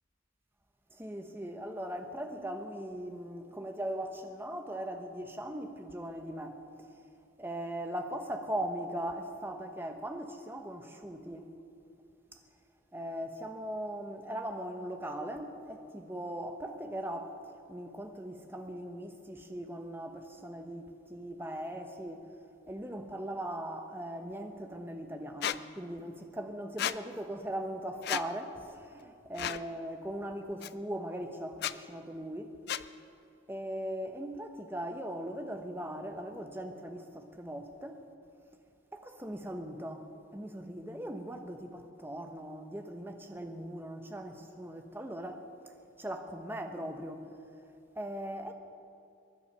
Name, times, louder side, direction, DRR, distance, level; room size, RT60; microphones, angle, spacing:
voice 1, 0.9-6.9 7.4-11.5 12.3-12.4 12.9-22.3 22.7-29.0 29.3-32.5 33.5-38.0 38.9-40.1 40.3-45.5 46.0-47.2 48.0-48.5, right 1 dB, 10° right, 1.0 m, -39 dB
Squeak, 25.4-25.6 26.8-27.0 28.0-28.3 29.4-29.6 30.6-30.7 31.5-31.7 32.7-32.9, left 10 dB, 50° left, 0.4 m, -33 dB
23.0 x 10.5 x 5.6 m
head